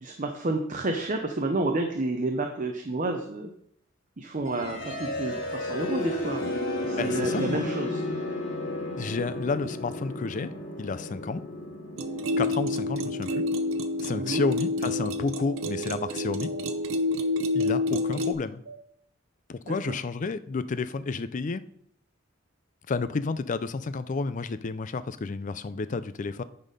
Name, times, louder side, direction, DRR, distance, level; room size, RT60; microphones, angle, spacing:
voice 1, 0.0-3.5 4.2-6.5 6.8-8.0 14.1-14.4 19.7-19.8, right 2 dB, 40° right, 4 dB, 0.7 m, -30 dB
sound 1, 4.4-16.3, left 1 dB, 85° left, 2.1 m, -34 dB
voice 2, 7.0-7.7 9.0-10.5 10.8-11.4 12.4-13.4 14.0-16.5 17.5-18.6 19.5-21.6 22.9-26.4, left 4 dB, 40° left, 14 dB, 0.4 m, -31 dB
sound 2, 12.0-18.3, left 2 dB, 85° right, 0.8 m, -28 dB
sound 3, 12.2-12.4 13.3-13.4 14.4-14.5 15.4-15.6 16.5-16.7 17.6-17.7 18.6-18.8 19.7-19.9, right 5 dB, 65° right, 2.3 m, -44 dB
9.7 x 4.2 x 5.3 m, 0.69 s
head